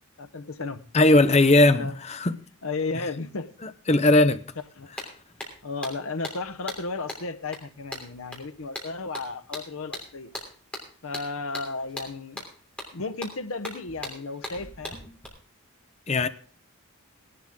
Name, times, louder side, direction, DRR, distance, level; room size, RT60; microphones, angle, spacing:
voice 1, 0.2-0.9 1.8-1.9 2.6-3.5 4.8-4.9 5.6-10.3 11.0-12.5 12.9-15.0, left 3 dB, 65° left, 0.9 m, -34 dB
voice 2, 0.9-2.3 3.9-4.4 16.1-16.3, left 2 dB, 30° left, 0.6 m, -18 dB
sound 1, 4.6-4.7 5.0-15.3, left 1 dB, 5° left, 3.0 m, -40 dB
17.5 x 11.5 x 3.6 m
head